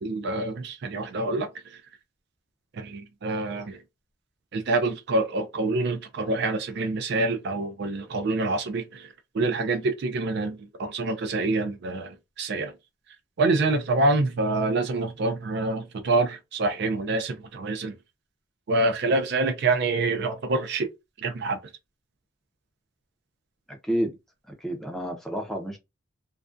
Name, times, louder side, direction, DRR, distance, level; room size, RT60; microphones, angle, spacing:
voice 1, 0.0-1.8 2.7-3.8 4.5-12.7 13.4-17.9 18.7-20.9 21.2-21.6, right 2 dB, 55° right, 0.4 m, -26 dB
voice 2, 23.7-24.2 24.5-25.8, equal, ahead, 0.5 m, -30 dB
2.3 x 2.1 x 2.5 m
head